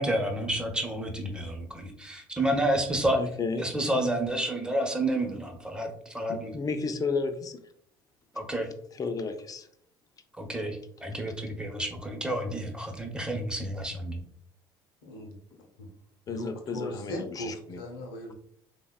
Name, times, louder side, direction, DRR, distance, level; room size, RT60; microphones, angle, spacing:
voice 1, 0.0-3.2 3.6-6.5 8.3-8.7 10.4-14.2, right 1 dB, 5° right, 2 dB, 0.7 m, -30 dB
voice 2, 3.1-3.7 6.3-7.6 8.9-9.7 16.3-17.8, left 4 dB, 30° left, 8 dB, 0.4 m, -32 dB
voice 3, 15.0-15.4 15.8-15.9 16.3-18.3, left 1 dB, 75° left, 2 dB, 0.6 m, -38 dB
3.3 x 2.1 x 2.2 m, 0.67 s
hypercardioid pair, 60°, 12 cm